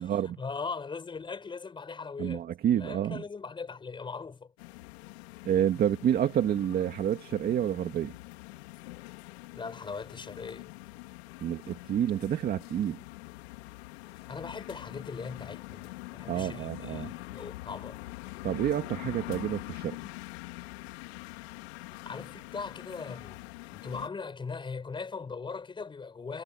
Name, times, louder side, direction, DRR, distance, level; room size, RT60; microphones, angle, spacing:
voice 1, 0.0-2.5 2.7-4.5 9.5-10.7 14.1-18.0 22.0-23.4 23.7-26.4, left 5 dB, 15° left, 6.2 m, -40 dB
voice 2, 2.2-3.2 5.4-8.1 11.4-13.0 16.3-17.1 18.4-20.0, right 10 dB, 30° right, 2.1 m, -28 dB
sound 1, 4.6-24.1, left 21 dB, 75° left, 3.5 m, -44 dB
supercardioid pair, 145°, 33 cm